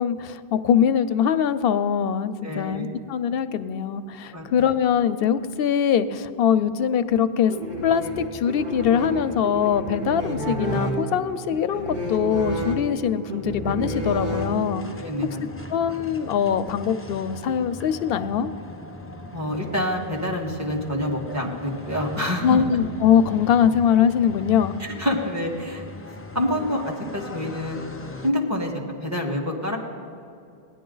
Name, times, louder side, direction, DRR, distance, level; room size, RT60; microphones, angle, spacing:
voice 1, 0.0-7.5 7.8-14.8 15.7-18.5 22.4-24.7, left 8 dB, 70° left, 11 dB, 0.7 m, -22 dB
voice 2, 2.4-2.8 4.3-4.4 15.0-15.6 19.3-22.6 24.8-25.8 26.3-27.8 28.2-28.7 29.0-29.8, left 1 dB, 15° right, 0 dB, 1.5 m, -27 dB
sound 1, 7.5-15.0, right 1 dB, 45° right, 1.9 m, -30 dB
sound 2, 14.3-28.3, left 2 dB, 20° left, 0.4 m, -40 dB
17.5 x 10.5 x 3.9 m, 2.5 s
omnidirectional pair, 1.1 m